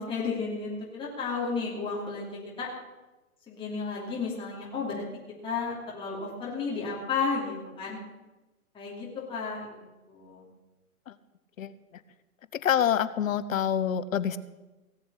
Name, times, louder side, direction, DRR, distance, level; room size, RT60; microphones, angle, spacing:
voice 1, 0.0-2.7 3.5-5.0 5.4-8.0 8.7-10.5, left 4 dB, 10° left, -5 dB, 2.9 m, -33 dB
voice 2, 12.5-14.4, left 9 dB, 65° left, 15 dB, 1.0 m, -26 dB
18.0 x 7.2 x 8.2 m, 1.1 s
hypercardioid pair, 145°, 43 cm